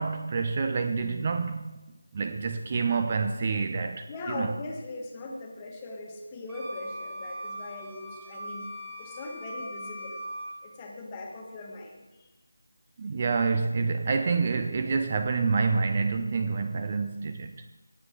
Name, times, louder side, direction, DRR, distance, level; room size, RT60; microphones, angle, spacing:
voice 1, 0.0-1.7 2.1-4.1 4.4-4.5 13.0-17.6, right 4 dB, 25° right, 0.5 m, -27 dB
voice 2, 4.1-8.7 9.0-10.2 10.6-12.3, left 2 dB, 15° left, 1.4 m, -39 dB
Wind instrument woodwind instrument, 6.5-10.6, equal, 5° right, 2.1 m, -40 dB
18.0 x 7.8 x 3.8 m
figure-of-eight pair, 170°, 0 cm